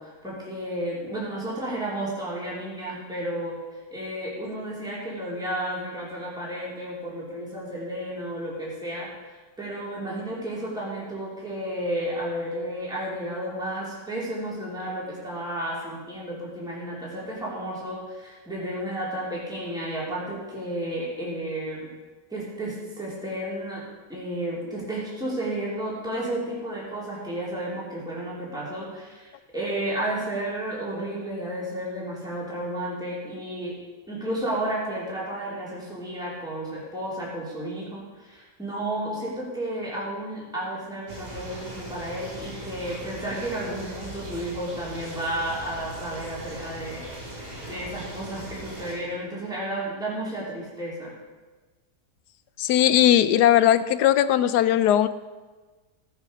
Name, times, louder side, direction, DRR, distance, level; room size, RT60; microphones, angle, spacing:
voice 1, 0.0-21.9 22.3-23.8 24.1-33.7 34.1-47.0 47.7-51.1, right 1 dB, ahead, -6 dB, 3.1 m, -32 dB
sound 1, 41.1-48.9, right 1 dB, 85° right, 4.5 m, -39 dB
voice 2, 52.6-55.1, left 11 dB, 80° left, 14 dB, 1.2 m, -19 dB
16.5 x 7.5 x 5.2 m, 1.3 s
omnidirectional pair, 1.8 m